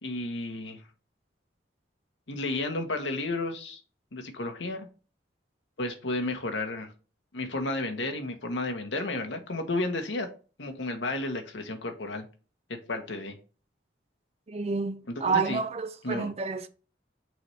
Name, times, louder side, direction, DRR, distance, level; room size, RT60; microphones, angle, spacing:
voice 1, 0.0-0.8 2.3-3.8 4.1-4.9 5.8-6.9 7.3-10.3 10.6-12.2 12.9-13.4 15.1-15.6 16.0-16.3, left 2 dB, 90° left, 1.1 m, -32 dB
voice 2, 14.5-16.7, right 4 dB, 35° right, 0.5 m, -29 dB
6.1 x 3.2 x 5.5 m
head